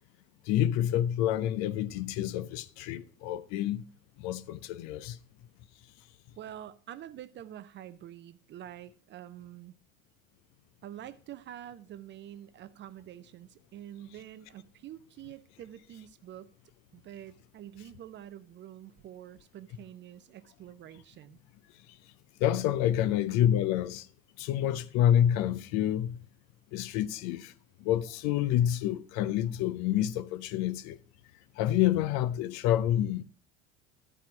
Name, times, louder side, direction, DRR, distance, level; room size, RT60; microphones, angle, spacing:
voice 1, 0.4-3.9 4.2-5.2 21.9-22.0 22.4-24.1 24.4-26.2 26.7-27.5 27.8-31.0 31.5-33.2, left 11 dB, 45° left, 0.6 m, -28 dB
voice 2, 6.4-9.7 10.8-16.5 16.9-21.4, right 11 dB, 30° right, 0.6 m, -47 dB
13.0 x 5.0 x 5.9 m
figure-of-eight pair, 75°, 40 cm